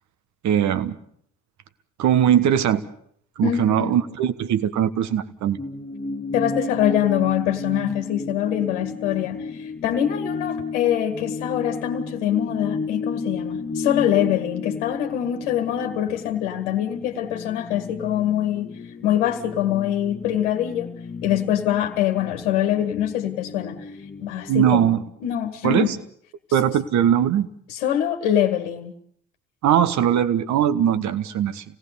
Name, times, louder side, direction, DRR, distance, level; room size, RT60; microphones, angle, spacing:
voice 1, 0.4-1.0 2.0-2.8 3.4-5.6 24.5-25.0 25.6-26.0 26.5-27.5 29.6-31.6, right 10 dB, 50° right, 1.4 m, -20 dB
voice 2, 3.4-3.9 6.3-18.7 19.0-20.9 21.2-23.9 24.2-26.0 26.5-26.6 27.7-28.9, left 11 dB, 70° left, 1.7 m, -24 dB
sound 1, 5.6-24.9, left 3 dB, 20° left, 1.5 m, -33 dB
26.5 x 18.0 x 6.8 m
figure-of-eight pair, 55°, 36 cm